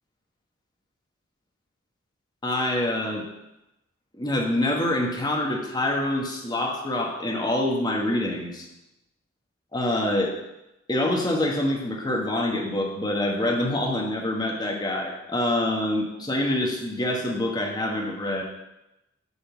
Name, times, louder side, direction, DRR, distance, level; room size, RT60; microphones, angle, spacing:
voice 1, 2.4-3.2 4.1-8.7 9.7-10.4 10.9-18.4, left 1 dB, 20° left, 0 dB, 1.1 m, -26 dB
8.2 x 3.7 x 5.9 m, 0.93 s
head